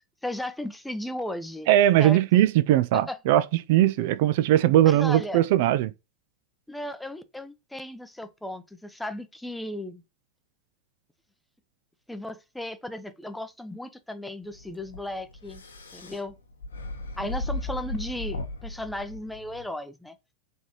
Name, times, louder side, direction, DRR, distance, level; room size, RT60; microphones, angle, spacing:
voice 1, 0.0-1.7 2.0-2.2 2.9-3.2 4.8-5.4 6.7-10.0 12.1-15.6 15.9-16.3 17.2-20.2, left 1 dB, 5° left, 0.6 m, -35 dB
voice 2, 1.7-5.9, right 13 dB, 55° right, 0.3 m, -20 dB
sound 1, 14.5-19.7, left 2 dB, 80° left, 0.9 m, -36 dB
4.0 x 3.5 x 2.8 m
figure-of-eight pair, 90°, 0 cm